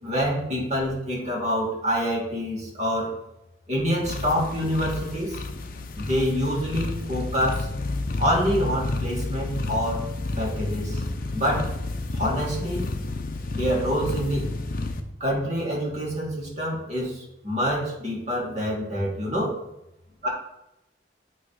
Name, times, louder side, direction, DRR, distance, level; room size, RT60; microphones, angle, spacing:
voice 1, 0.0-3.1 3.7-5.4 6.0-7.7 8.2-10.0 10.4-11.0 11.3-11.7 12.1-12.9 13.5-14.4 15.2-19.6 20.2-20.3, equal, 40° right, -3 dB, 2.4 m, -26 dB
sound 1, 4.0-15.0, left 2 dB, 50° left, 0.7 m, -31 dB
9.1 x 3.3 x 4.9 m, 0.87 s
head